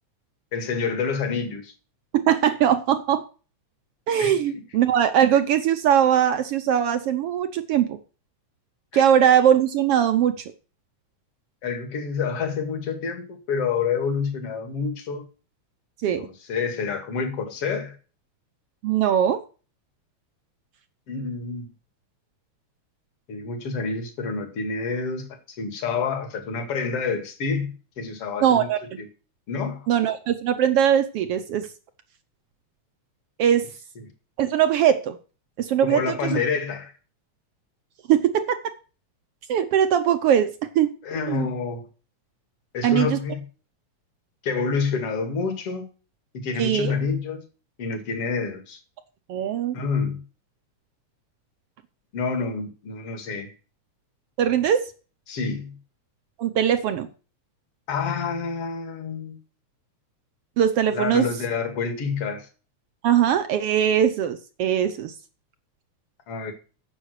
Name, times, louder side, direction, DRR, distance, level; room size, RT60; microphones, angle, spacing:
voice 1, 0.5-1.7 4.2-4.3 8.9-9.0 11.6-15.2 16.2-18.0 21.1-21.7 23.3-28.7 29.0-29.1 29.5-29.9 34.0-34.1 35.8-36.9 41.0-41.9 42.7-43.4 44.4-45.9 46.3-47.4 47.8-48.8 49.7-50.2 52.1-53.5 55.3-55.7 57.9-59.4 60.9-62.5 66.3-66.5, left 5 dB, 55° left, 2.9 m, -28 dB
voice 2, 2.1-3.2 4.1-8.0 8.9-10.4 16.0-16.3 18.8-19.4 28.4-28.8 29.9-31.7 33.4-33.7 34.4-35.2 35.6-36.3 38.1-38.6 39.5-40.9 41.3-41.5 42.8-43.2 46.6-47.0 49.3-49.8 54.4-54.9 56.4-57.1 60.6-61.2 63.0-65.1, right 9 dB, 70° right, 1.5 m, -21 dB
9.9 x 7.3 x 6.4 m
omnidirectional pair, 3.3 m